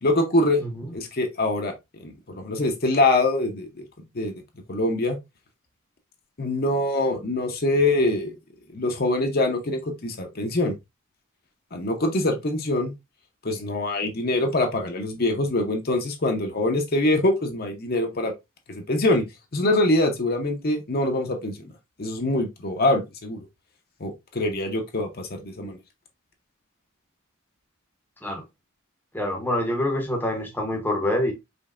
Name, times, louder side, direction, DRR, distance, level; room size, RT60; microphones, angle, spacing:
voice 1, 0.0-0.6 0.9-1.7 2.0-3.8 4.1-4.4 4.7-5.2 6.4-8.3 8.7-10.7 11.7-12.9 13.4-18.3 18.7-19.2 19.5-21.7 22.0-23.4 24.0-25.8, left 2 dB, 45° left, 0.9 m, -24 dB
voice 2, 29.1-31.3, left 1 dB, 10° left, 0.9 m, -26 dB
5.2 x 3.3 x 2.5 m
head